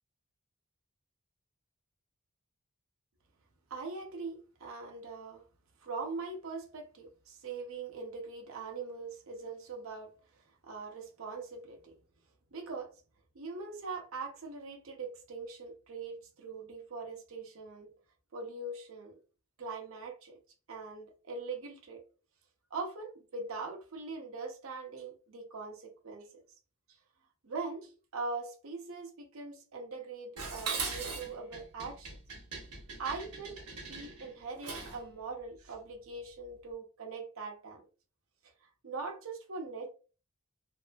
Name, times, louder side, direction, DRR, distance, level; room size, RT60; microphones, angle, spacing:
voice 1, 3.7-5.4 5.8-10.1 10.7-11.9 12.5-12.9 13.3-17.9 18.3-19.2 19.6-20.4 20.7-22.0 22.7-26.4 27.4-32.1 33.0-33.6 33.9-37.8 38.6-39.9, right 4 dB, 65° right, 0.7 m, -42 dB
Dishes pots and pans, 30.4-35.1, right 4 dB, 85° right, 0.9 m, -40 dB
2.7 x 2.5 x 2.3 m
head